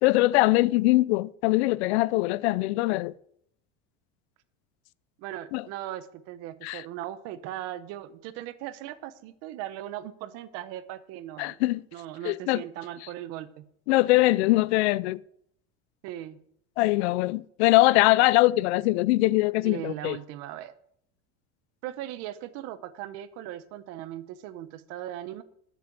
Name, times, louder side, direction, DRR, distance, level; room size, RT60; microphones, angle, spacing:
voice 1, 0.0-3.1 5.5-5.6 6.6-6.8 11.4-11.8 12.2-12.6 13.9-15.2 16.8-20.2, left 19 dB, 90° left, 0.5 m, -22 dB
voice 2, 5.2-11.6 11.9-13.6 16.0-16.4 19.6-20.7 21.8-25.4, right 13 dB, 50° right, 0.9 m, -38 dB
13.0 x 6.9 x 6.0 m
cardioid pair, 165°, 32 cm